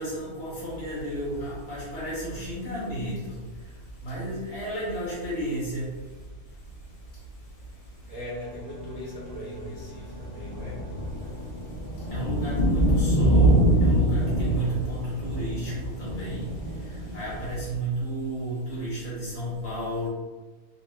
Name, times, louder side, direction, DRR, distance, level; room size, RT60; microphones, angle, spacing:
voice 1, 0.0-3.4 4.0-5.9 11.3-11.4 12.1-16.5 16.9-20.1, right 1 dB, 85° left, -8 dB, 2.1 m, -32 dB
sound 1, 0.7-0.8 1.0-1.5 1.9-4.0 4.6-4.7 4.9-5.0 5.2-5.4 6.0-6.7 7.0-17.7, right 1 dB, 35° left, 0.6 m, -26 dB
Bowed string instrument, 8.0-12.3, left 4 dB, 80° right, 1.3 m, -47 dB
voice 2, 8.1-10.8, equal, 20° right, -9 dB, 0.8 m, -39 dB
4.0 x 2.5 x 3.3 m, 1.3 s
omnidirectional pair, 1.5 m